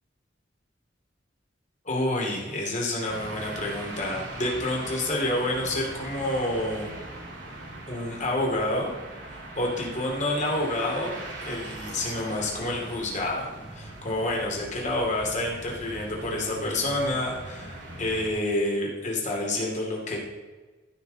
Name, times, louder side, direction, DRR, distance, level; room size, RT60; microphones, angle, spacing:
voice 1, 1.8-6.9 7.9-8.9 9.2-20.2, left 1 dB, 40° left, -1 dB, 2.7 m, -28 dB
sound 1, 3.1-18.3, right 1 dB, 70° right, 2.4 m, -40 dB
14.5 x 6.2 x 4.0 m, 1.3 s
head